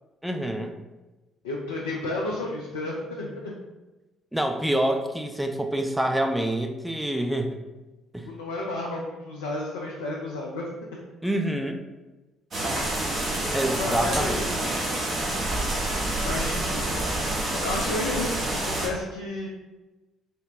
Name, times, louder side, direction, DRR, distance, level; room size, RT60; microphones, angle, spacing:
voice 1, 0.2-0.7 4.3-7.6 8.1-8.3 11.2-11.8 13.5-14.4, right 1 dB, 5° right, 4 dB, 0.5 m, -26 dB
voice 2, 1.4-3.5 8.3-11.0 13.7-14.8 16.2-17.0 17.2-19.5, left 2 dB, 75° left, -3 dB, 0.4 m, -32 dB
sound 1, 12.5-18.9, right 1 dB, 45° right, 1.0 m, -27 dB
3.5 x 2.1 x 3.8 m, 1.1 s
figure-of-eight pair, 45°, 0 cm